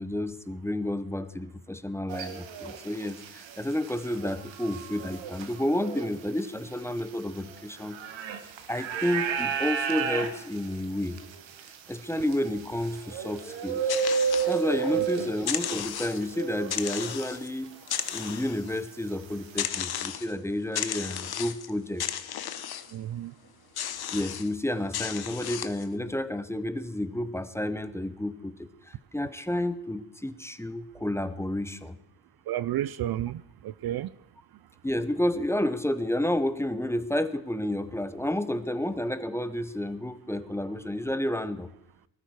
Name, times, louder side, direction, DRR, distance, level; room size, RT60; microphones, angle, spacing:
voice 1, 0.0-8.0 8.7-11.2 11.9-13.9 14.2-17.8 18.1-22.0 24.1-32.0 34.8-41.7, left 1 dB, 5° left, 0.7 m, -30 dB
sound 1, 2.1-17.4 17.7-19.6, right 6 dB, 80° right, 1.7 m, -34 dB
sound 2, 13.5-15.0 15.3-16.3 16.7-17.5 17.8-18.8 19.6-20.3 20.7-21.7 22.0-22.9 23.7-24.5 24.9-25.9, left 10 dB, 55° left, 1.1 m, -34 dB
voice 2, 22.9-23.3 32.5-34.1, right 12 dB, 55° right, 0.5 m, -31 dB
19.5 x 13.5 x 4.7 m
cardioid pair, 125°, 45 cm